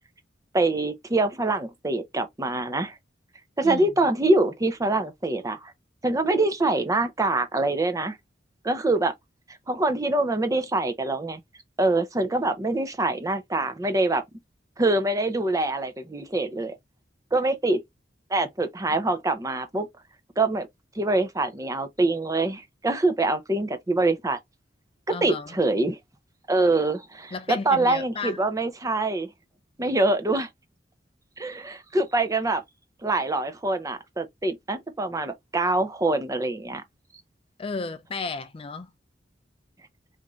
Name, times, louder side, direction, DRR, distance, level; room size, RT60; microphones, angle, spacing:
voice 1, 0.5-2.9 3.6-5.7 6.0-8.2 8.6-9.1 9.7-11.4 11.8-14.2 14.8-16.7 17.3-17.8 18.3-19.9 20.4-20.7 21.0-24.4 25.2-26.0 26.5-29.3 29.8-30.5 31.4-32.6 33.0-36.8, right 2 dB, 20° right, 0.6 m, -24 dB
voice 2, 25.1-25.5 27.3-28.4 37.6-38.9, left 4 dB, 30° left, 0.4 m, -33 dB
3.6 x 2.6 x 3.0 m
head